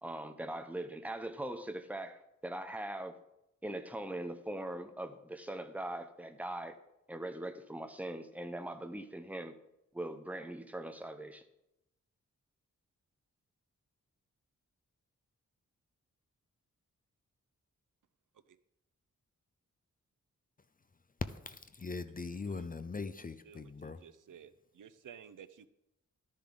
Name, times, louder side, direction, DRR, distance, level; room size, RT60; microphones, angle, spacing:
voice 1, 0.0-3.2 3.6-6.8 7.1-9.5 9.9-11.4, right 1 dB, 5° right, 7 dB, 0.7 m, -41 dB
voice 2, 21.5-24.0, left 4 dB, 30° left, 11 dB, 0.4 m, -41 dB
voice 3, 23.4-25.7, right 8 dB, 85° right, 14 dB, 0.6 m, -54 dB
12.0 x 10.5 x 3.8 m, 0.85 s
wide cardioid pair, 175°, 31 cm